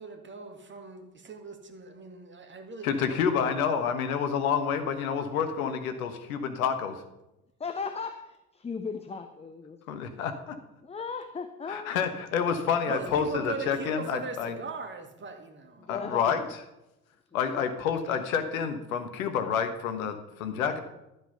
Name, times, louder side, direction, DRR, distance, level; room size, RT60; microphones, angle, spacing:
voice 1, 0.0-3.6 12.8-16.0, right 4 dB, 25° right, 5 dB, 2.2 m, -40 dB
voice 2, 2.8-7.0 9.9-10.5 11.7-14.5 15.9-16.4 17.3-20.8, left 7 dB, 70° left, 9 dB, 1.4 m, -28 dB
voice 3, 7.6-9.8 10.8-12.1 15.8-16.4 17.6-17.7, left 5 dB, 15° left, 9 dB, 0.7 m, -37 dB
12.5 x 7.3 x 5.5 m, 0.92 s
figure-of-eight pair, 65°, 43 cm